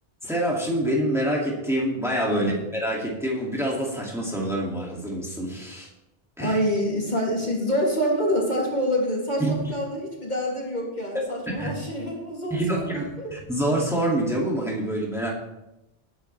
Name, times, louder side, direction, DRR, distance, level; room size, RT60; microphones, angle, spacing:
voice 1, 0.2-5.9 6.4-6.6 9.4-9.5 11.5-11.7 12.5-15.3, right 1 dB, 5° right, -3 dB, 2.6 m, -26 dB
voice 2, 6.4-13.3, equal, 45° left, -3 dB, 3.1 m, -26 dB
19.0 x 10.0 x 3.4 m, 0.92 s
omnidirectional pair, 1.1 m